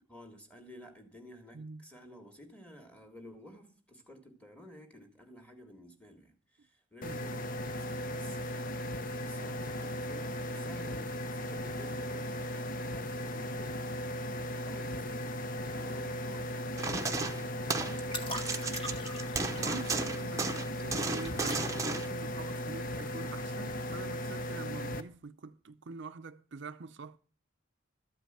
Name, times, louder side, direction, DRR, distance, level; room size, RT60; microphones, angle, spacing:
voice 1, 0.1-14.3 14.6-15.4 15.7-19.0, equal, 5° left, 1.9 m, -52 dB
voice 2, 1.5-1.9 7.0-7.5 19.5-27.2, right 4 dB, 60° right, 0.5 m, -45 dB
sound 1, 7.0-25.0, left 1 dB, 45° left, 0.7 m, -37 dB
sound 2, 16.8-18.0 18.3-22.1, right 3 dB, 15° right, 0.8 m, -34 dB
sound 3, 18.0-24.2, left 1 dB, 25° left, 1.8 m, -45 dB
13.0 x 5.3 x 8.9 m
head